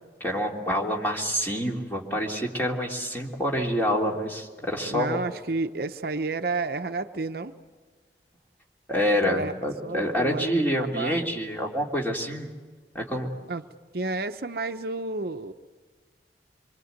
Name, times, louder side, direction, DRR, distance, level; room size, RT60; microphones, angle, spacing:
voice 1, 0.2-5.2 8.9-12.5 12.9-13.3, equal, 10° left, -1 dB, 3.1 m, -27 dB
voice 2, 4.9-7.6 9.2-9.5 9.8-11.2 13.5-13.6 13.9-15.5, right 3 dB, 55° right, 8 dB, 0.8 m, -31 dB
25.0 x 24.5 x 8.1 m, 1.4 s
head